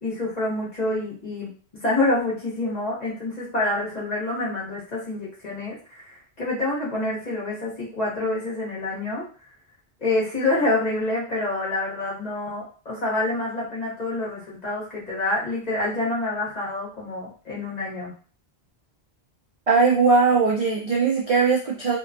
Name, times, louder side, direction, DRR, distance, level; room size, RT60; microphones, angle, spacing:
voice 1, 0.0-1.5 1.8-9.2 10.0-18.1, left 2 dB, 40° left, -6 dB, 1.1 m, -27 dB
voice 2, 19.7-22.0, right 4 dB, 55° right, -3 dB, 0.4 m, -19 dB
2.7 x 2.3 x 2.5 m, 0.39 s
omnidirectional pair, 1.1 m